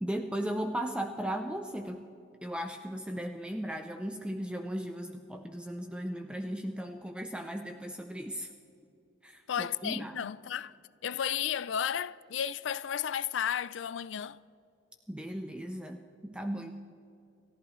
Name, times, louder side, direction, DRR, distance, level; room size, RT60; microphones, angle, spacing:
voice 1, 0.0-2.0 2.4-8.5 9.2-10.2 15.1-16.7, equal, 5° right, 0.5 m, -36 dB
voice 2, 9.5-10.7 11.0-14.4, left 9 dB, 80° left, 0.4 m, -33 dB
29.0 x 14.0 x 3.1 m
head